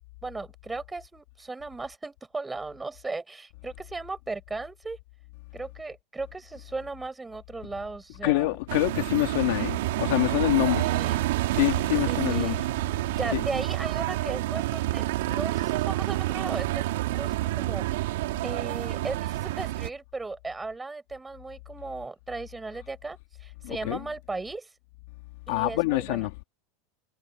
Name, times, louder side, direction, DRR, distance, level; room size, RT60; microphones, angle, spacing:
voice 1, 0.2-5.0 5.5-8.6 10.8-11.2 12.1-12.6 13.1-24.7 25.5-26.3, right 3 dB, 10° right, 5.3 m, -36 dB
voice 2, 8.2-10.9 11.5-12.7 13.3-13.4 23.6-24.0 25.5-26.4, left 21 dB, 65° left, 2.7 m, -26 dB
sound 1, 8.7-19.9, right 16 dB, 80° right, 2.8 m, -28 dB
supercardioid pair, 170°, 0 cm